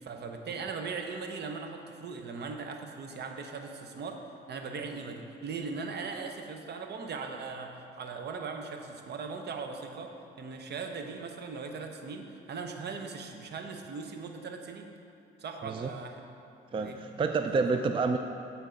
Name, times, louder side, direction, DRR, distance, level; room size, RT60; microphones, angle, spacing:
voice 1, 0.0-4.2 4.5-14.9 15.4-16.3 16.7-17.0 17.5-17.6, right 4 dB, 55° right, 4 dB, 0.8 m, -39 dB
voice 2, 16.7-18.2, right 4 dB, 25° right, 6 dB, 0.3 m, -28 dB
9.0 x 4.4 x 5.1 m, 2.7 s
cardioid pair, 90°, 20 cm